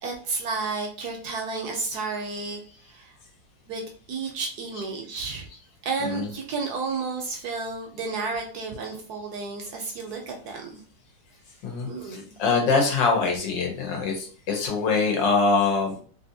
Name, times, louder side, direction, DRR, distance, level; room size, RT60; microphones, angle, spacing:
voice 1, 0.0-2.6 2.9-3.1 3.7-5.5 5.8-10.8 11.9-12.2, right 4 dB, 70° right, 2 dB, 1.0 m, -32 dB
voice 2, 11.6-16.0, left 4 dB, 80° left, 2 dB, 1.6 m, -24 dB
3.3 x 2.5 x 2.6 m, 0.43 s
omnidirectional pair, 2.0 m